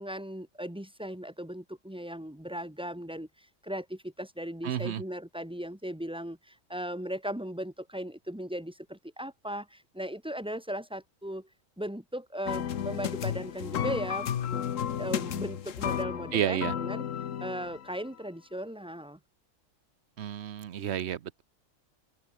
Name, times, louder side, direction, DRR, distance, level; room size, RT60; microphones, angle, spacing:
voice 1, 0.0-11.5 11.8-14.6 15.0-17.0 17.4-19.2, equal, 5° right, 1.6 m, -37 dB
voice 2, 4.6-5.0 16.3-16.7 20.2-21.4, right 9 dB, 60° right, 1.0 m, -31 dB
sound 1, 12.5-18.0, left 9 dB, 70° left, 1.3 m, -33 dB
open air
omnidirectional pair, 1.4 m